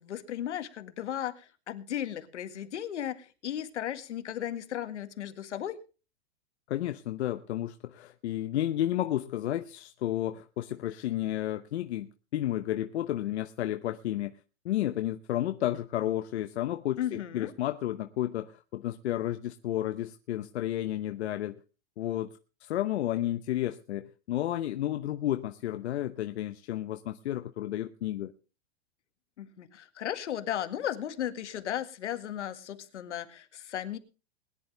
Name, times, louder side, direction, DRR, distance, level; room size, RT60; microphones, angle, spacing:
voice 1, 0.0-5.8 17.0-17.5 29.4-34.0, left 11 dB, 90° left, 1.9 m, -35 dB
voice 2, 6.7-14.3 14.6-21.6 22.0-22.3 22.6-28.3, left 13 dB, 75° left, 1.0 m, -32 dB
21.0 x 10.5 x 3.3 m
supercardioid pair, 160°, 34 cm